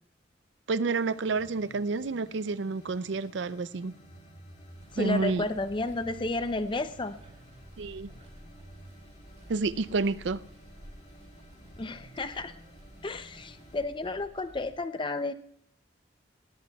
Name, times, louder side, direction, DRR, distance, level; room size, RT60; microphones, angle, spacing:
voice 1, 0.7-3.9 5.0-5.4 7.8-8.1 9.5-10.4, right 4 dB, 80° right, 16 dB, 0.5 m, -29 dB
sound 1, 0.9-13.8, right 1 dB, 45° left, 4.9 m, -53 dB
sound 2, 4.7-14.8, equal, 40° right, 2.5 m, -53 dB
voice 2, 4.9-7.2 11.8-12.5 13.0-15.3, left 2 dB, 25° left, 11 dB, 0.6 m, -32 dB
19.5 x 16.0 x 2.3 m, 0.69 s
head